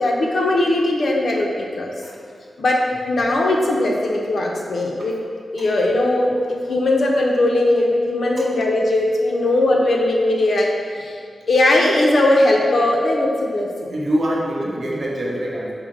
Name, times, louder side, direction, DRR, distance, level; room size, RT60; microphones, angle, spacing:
voice 1, 0.0-1.9 2.6-5.2 5.5-11.2 11.5-14.0, left 1 dB, 70° left, -1 dB, 0.6 m, -19 dB
voice 2, 13.9-15.7, equal, 55° right, -3 dB, 0.8 m, -24 dB
4.7 x 2.1 x 4.7 m, 2.2 s
wide cardioid pair, 80°, 0 cm